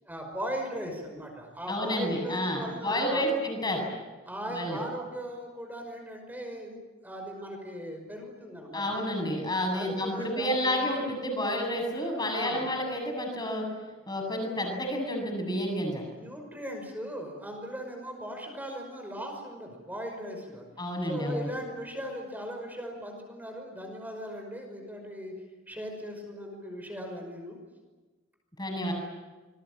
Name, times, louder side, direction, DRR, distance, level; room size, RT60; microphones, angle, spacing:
voice 1, 0.0-3.4 4.3-9.3 9.7-10.8 11.9-12.7 16.1-20.7 21.0-25.3 25.7-27.6, equal, 10° right, 3 dB, 5.5 m, -38 dB
voice 2, 1.7-3.8 4.5-4.8 8.7-13.6 14.1-16.0 20.8-21.5 28.6-28.9, equal, 20° left, 2 dB, 7.7 m, -30 dB
27.0 x 22.0 x 8.8 m, 1.2 s
head